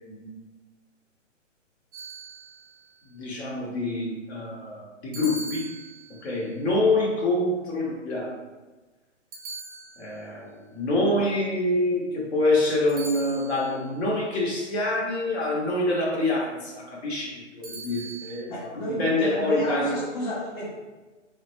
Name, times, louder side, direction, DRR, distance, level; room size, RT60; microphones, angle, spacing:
voice 1, 0.1-0.4 3.0-5.7 6.1-8.4 10.0-18.5 19.0-20.0, left 2 dB, 60° left, -4 dB, 1.1 m, -26 dB
sound 1, 1.9-2.8 5.1-6.4 9.3-10.4 12.9-13.9 17.6-18.4, right 2 dB, 30° right, 0.5 m, -40 dB
voice 2, 18.5-20.7, equal, 20° left, -5 dB, 0.7 m, -31 dB
3.5 x 2.2 x 3.1 m, 1.2 s
figure-of-eight pair, 135°, 38 cm